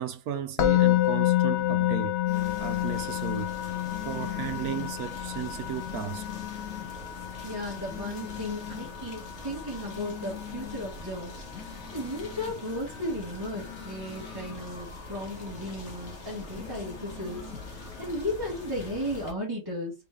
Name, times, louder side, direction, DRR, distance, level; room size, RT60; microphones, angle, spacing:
voice 1, 0.0-2.2 2.6-3.7 4.0-6.2, right 9 dB, 70° right, 1.0 m, -35 dB
Musical instrument, 0.6-11.7, left 14 dB, 60° left, 0.6 m, -29 dB
sound 1, 2.3-2.9 3.9-4.9 5.9-6.9 7.9-8.9 9.9-10.9 11.5-12.6 13.5-14.6 16.6-17.6, left 11 dB, 85° left, 1.4 m, -42 dB
sound 2, 2.3-19.3, left 2 dB, 45° left, 1.4 m, -43 dB
voice 2, 7.4-11.3 11.9-19.9, left 1 dB, 15° right, 1.4 m, -35 dB
3.8 x 3.7 x 3.5 m
omnidirectional pair, 1.8 m